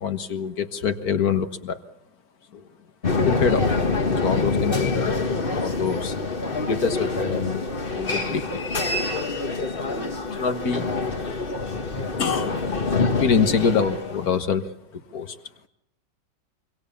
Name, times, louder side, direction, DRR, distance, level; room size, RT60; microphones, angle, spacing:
voice 1, 0.0-1.8 2.5-2.6 3.2-3.8 4.2-6.1 6.6-7.4 8.0-8.6 9.9-10.9 11.2-11.5 12.2-12.6 13.2-14.6 15.1-15.4, left 6 dB, 55° left, 9 dB, 1.9 m, -25 dB
sound 1, 3.0-14.3, left 3 dB, 30° left, 1.6 m, -26 dB
26.0 x 24.0 x 7.1 m, 0.78 s
omnidirectional pair, 1.9 m